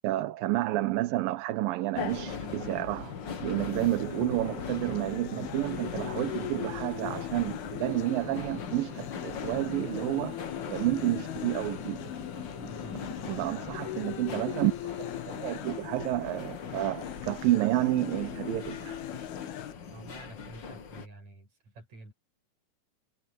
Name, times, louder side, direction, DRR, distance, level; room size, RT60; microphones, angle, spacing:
voice 1, 0.0-10.4 10.7-12.1 13.3-19.0, right 16 dB, 75° right, 2.6 m, -30 dB
sound 1, 1.9-21.1, left 6 dB, 50° left, 1.5 m, -40 dB
sound 2, 3.7-19.7, left 14 dB, 90° left, 2.9 m, -41 dB
sound 3, 7.8-15.6, left 8 dB, 70° left, 3.7 m, -53 dB
voice 2, 12.5-13.4 19.9-22.1, right 2 dB, 45° right, 8.9 m, -49 dB
omnidirectional pair, 4.3 m